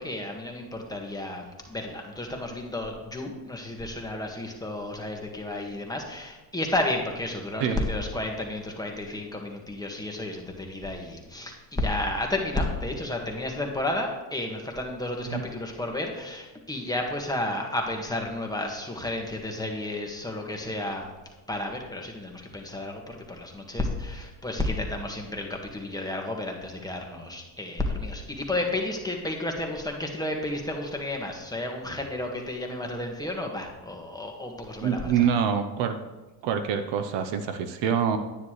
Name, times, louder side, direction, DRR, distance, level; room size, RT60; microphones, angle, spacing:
voice 1, 0.0-21.1 21.5-35.3, left 1 dB, 10° left, 1 dB, 1.7 m, -32 dB
voice 2, 34.8-35.9 36.4-38.2, right 7 dB, 65° right, 8 dB, 0.9 m, -25 dB
9.7 x 9.7 x 3.2 m, 1.1 s
supercardioid pair, 85°, 47 cm